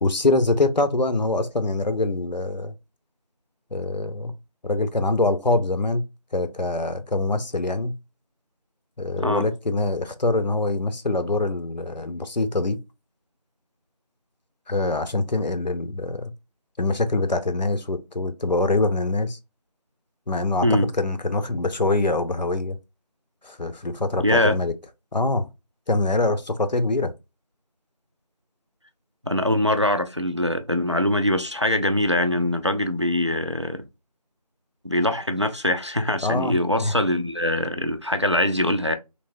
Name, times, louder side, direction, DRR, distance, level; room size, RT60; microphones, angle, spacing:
voice 1, 0.0-2.7 3.7-4.3 4.6-6.0 6.3-8.0 9.0-12.8 14.7-16.3 16.8-19.4 20.3-22.8 23.4-24.7 25.1-25.5 25.9-27.1 36.2-36.9, left 2 dB, 85° left, 0.7 m, -24 dB
voice 2, 24.2-24.6 29.2-33.9 34.8-39.0, left 1 dB, 45° right, 0.4 m, -23 dB
3.3 x 2.9 x 2.6 m
figure-of-eight pair, 180°, 21 cm